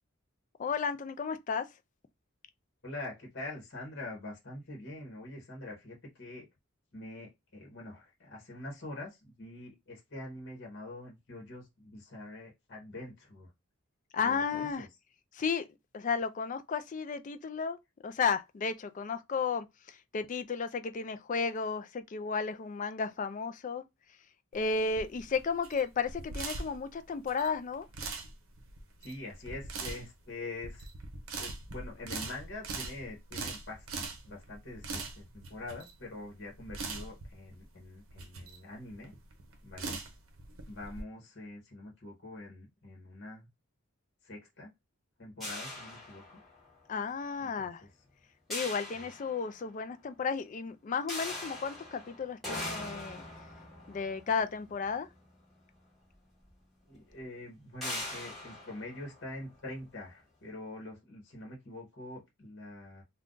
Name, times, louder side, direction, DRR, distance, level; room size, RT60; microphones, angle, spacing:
voice 1, 0.6-1.6 14.1-14.9 15.4-15.6 15.9-17.8 18.0-19.6 20.1-23.8 24.5-27.8 46.9-47.8 48.5-53.2 53.9-55.1, left 5 dB, 35° left, 0.3 m, -33 dB
voice 2, 2.8-6.5 6.9-13.5 14.2-14.9 29.0-30.9 31.4-39.1 39.6-40.0 40.7-43.5 44.2-44.7 45.2-46.4 47.4-47.9 48.9-49.1 56.9-63.0, left 2 dB, 50° left, 1.0 m, -45 dB
sound 1, 24.5-41.0, right 3 dB, 70° right, 0.7 m, -42 dB
sound 2, 45.4-46.8 48.5-49.8 51.1-55.5 56.5-56.6 56.9-57.1 57.8-59.8, left 1 dB, ahead, 1.1 m, -42 dB
2.5 x 2.3 x 3.7 m
head